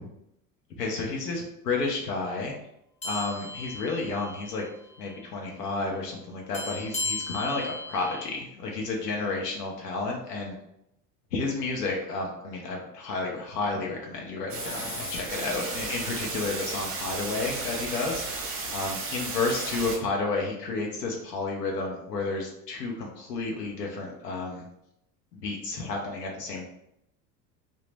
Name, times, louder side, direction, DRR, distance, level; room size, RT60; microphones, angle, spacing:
voice 1, 0.8-2.5 3.0-4.6 5.0-10.6 11.3-18.2 18.7-24.6 25.3-26.6, left 3 dB, 70° left, 0 dB, 0.7 m, -31 dB
sound 1, 3.0-4.7 5.0-5.2 6.5-8.3, left 3 dB, 15° left, 0.7 m, -36 dB
sound 2, 14.5-20.0, right 3 dB, 25° right, 0.7 m, -34 dB
2.8 x 2.1 x 3.2 m, 0.80 s
figure-of-eight pair, 70°, 50 cm